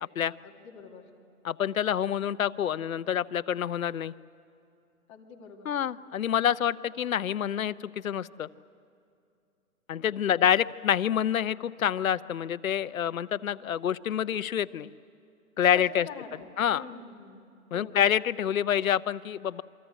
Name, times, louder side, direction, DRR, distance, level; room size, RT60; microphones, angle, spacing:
voice 1, 0.4-1.1 5.1-5.7 10.0-10.6 15.6-17.4 17.7-18.0, left 5 dB, 20° left, 0 dB, 2.1 m, -46 dB
voice 2, 1.4-4.1 5.7-7.7 8.0-8.5 9.9-14.9 15.6-16.1 16.6-16.8 17.7-19.6, left 9 dB, 65° left, 16 dB, 0.8 m, -27 dB
27.5 x 24.5 x 8.2 m, 2.5 s
hypercardioid pair, 165°, 44 cm